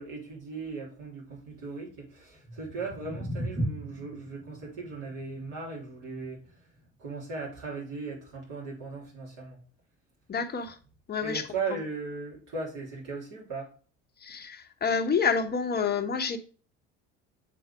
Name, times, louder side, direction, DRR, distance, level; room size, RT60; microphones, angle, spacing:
voice 1, 0.0-6.4 7.0-9.6 11.2-13.7, right 4 dB, 50° right, 3.6 m, -38 dB
sound 1, 2.3-8.5, equal, 15° right, 3.6 m, -39 dB
voice 2, 10.3-10.8 11.1-11.4 11.7-11.8 14.2-16.4, left 5 dB, 25° left, 1.0 m, -28 dB
7.3 x 4.2 x 3.5 m
figure-of-eight pair, 65°, 40 cm